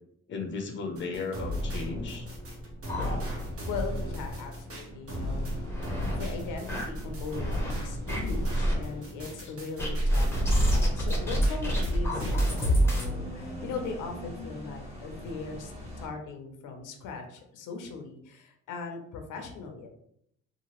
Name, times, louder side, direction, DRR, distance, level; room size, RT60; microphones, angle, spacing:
voice 1, 0.3-2.3 9.4-9.5, left 4 dB, 40° left, 4 dB, 0.6 m, -35 dB
sound 1, 1.0-11.9 12.2-12.8, equal, 50° right, 1.0 m, -36 dB
sound 2, 2.2-3.7 4.1-4.2 4.5-4.6 5.2-6.2 6.7-7.7 8.1-8.8 9.8-13.1, equal, 10° left, 0.8 m, -27 dB
voice 2, 3.7-5.5 6.1-15.7 16.0-19.9, left 4 dB, 85° left, 4 dB, 0.6 m, -39 dB
sound 3, 10.4-16.1, equal, 20° right, 1.1 m, -42 dB
2.8 x 2.5 x 2.9 m, 0.71 s
cardioid pair, 90°, 30 cm